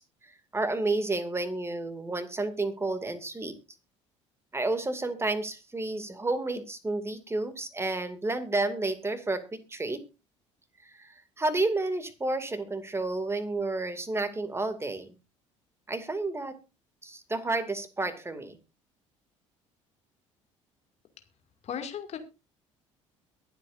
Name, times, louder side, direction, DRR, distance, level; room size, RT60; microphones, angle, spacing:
voice 1, 0.0-3.6 4.5-10.0 10.8-15.1 15.9-16.6 17.0-18.6, right 2 dB, 15° right, 11 dB, 2.3 m, -31 dB
voice 2, 21.6-22.2, left 8 dB, 40° left, 6 dB, 2.3 m, -35 dB
23.0 x 8.2 x 2.6 m, 0.29 s
figure-of-eight pair, 55°, 16 cm